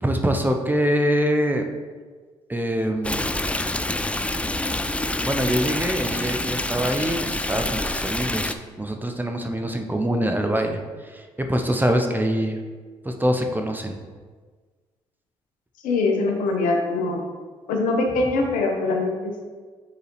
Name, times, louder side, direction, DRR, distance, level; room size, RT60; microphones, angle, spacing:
voice 1, 0.0-1.7 2.5-3.3 5.2-12.6 13.0-14.0, equal, 15° right, 4 dB, 0.7 m, -24 dB
Stream, 3.0-8.5, left 1 dB, 10° left, 0.4 m, -27 dB
voice 2, 15.8-17.2 17.7-19.4, left 3 dB, 75° left, 2 dB, 1.0 m, -23 dB
6.8 x 4.7 x 3.2 m, 1.5 s
hypercardioid pair, 45°, 14 cm